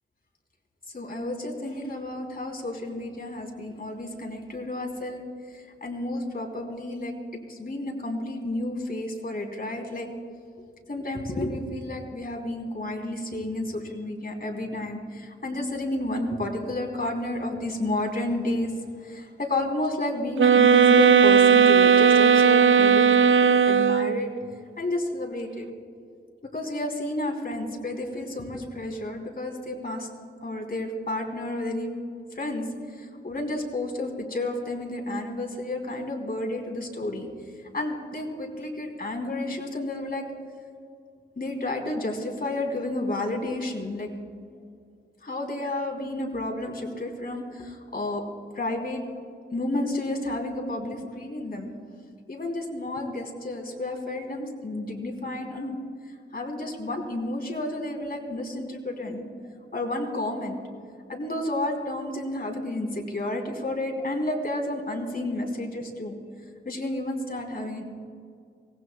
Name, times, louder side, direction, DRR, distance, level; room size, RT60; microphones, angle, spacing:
voice 1, 0.9-5.2 5.5-7.1 7.5-10.1 10.9-18.7 19.0-24.3 24.8-25.6 26.5-30.1 30.4-31.9 32.3-32.7 33.0-37.3 37.7-40.2 41.4-44.1 45.2-48.2 48.5-49.0 49.5-51.7 52.3-55.8 56.3-59.2 59.7-60.6 61.1-66.2 66.6-67.8, left 1 dB, 45° left, 1 dB, 3.2 m, -31 dB
sound 1, 20.4-24.3, right 7 dB, 70° right, 0.5 m, -17 dB
24.0 x 19.0 x 2.3 m, 2.2 s
cardioid pair, 65°, 21 cm